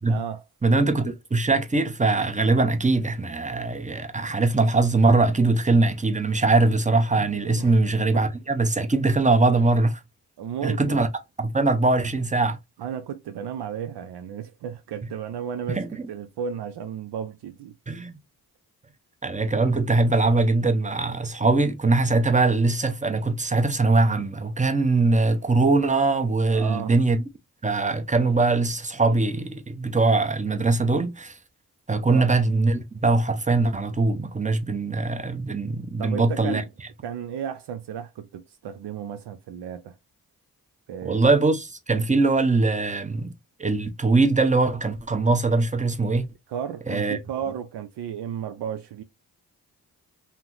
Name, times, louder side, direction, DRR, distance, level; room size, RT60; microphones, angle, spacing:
voice 1, 0.1-0.4 7.6-7.8 8.1-8.3 10.4-11.1 12.8-15.8 16.1-17.7 26.5-26.9 32.1-32.3 36.0-36.7 37.0-40.0 40.9-41.2 46.5-49.0, right 8 dB, 75° right, 0.5 m, -33 dB
voice 2, 0.6-10.0 10.6-11.1 11.4-12.6 15.7-15.9 17.9-18.2 19.2-27.2 27.6-31.3 31.9-36.6 41.0-43.3 43.6-46.3 46.9-47.2, right 3 dB, 20° right, 0.8 m, -22 dB
2.8 x 2.1 x 3.8 m
supercardioid pair, 40°, 40 cm